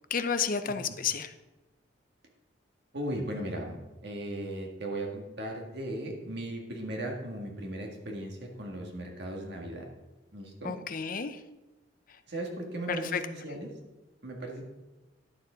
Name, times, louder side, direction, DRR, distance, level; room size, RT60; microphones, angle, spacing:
voice 1, 0.1-1.3 10.6-11.4 12.1-12.2 12.9-13.2, left 6 dB, 45° left, 9 dB, 0.7 m, -31 dB
voice 2, 2.9-9.9 10.3-10.8 12.3-13.7 14.2-14.6, right 1 dB, 60° right, 1 dB, 1.9 m, -37 dB
11.0 x 7.1 x 5.1 m, 1.1 s
head